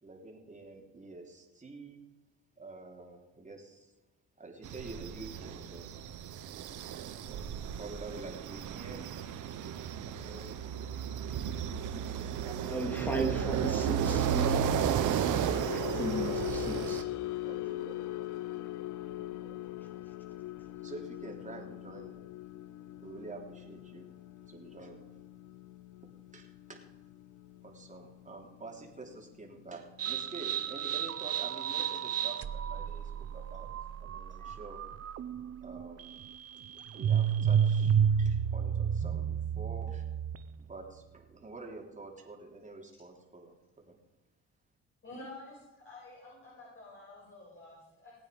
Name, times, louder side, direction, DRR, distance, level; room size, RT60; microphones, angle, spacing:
voice 1, 0.0-2.0 2.6-3.9 4.4-5.9 7.3-9.1 9.6-10.6 17.4-18.3 19.4-19.6 20.8-22.2 23.0-24.1 24.4-25.1 26.3-26.8 27.6-33.7 34.0-34.8 35.6-36.2 36.9-40.0 40.6-44.0, right 3 dB, 25° right, 1 dB, 3.4 m, -48 dB
sound 1, 4.6-17.0, right 8 dB, 80° right, 1.2 m, -33 dB
voice 2, 12.4-14.7 15.0-15.4 15.7-17.0, right 1 dB, 5° left, 3 dB, 2.9 m, -36 dB
sound 2, 14.8-31.1 31.4-31.7 32.1-32.3, left 16 dB, 85° left, 0.7 m, -42 dB
sound 3, 30.0-40.6, right 8 dB, 50° right, 0.8 m, -31 dB
voice 3, 45.0-48.1, left 2 dB, 40° left, -5 dB, 6.3 m, -49 dB
19.5 x 8.9 x 5.3 m, 1.1 s
cardioid pair, 90°, 30 cm